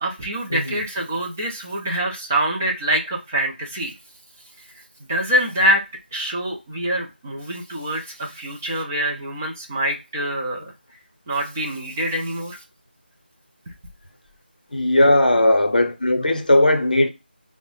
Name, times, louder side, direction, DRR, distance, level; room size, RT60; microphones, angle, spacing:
voice 1, 0.0-3.9 5.1-5.8 6.1-10.7 11.3-12.6 13.7-13.8, right 1 dB, 15° right, 0.5 m, -25 dB
voice 2, 14.7-17.1, left 1 dB, 55° left, 0.7 m, -17 dB
5.1 x 2.1 x 3.0 m
figure-of-eight pair, 165°, 6 cm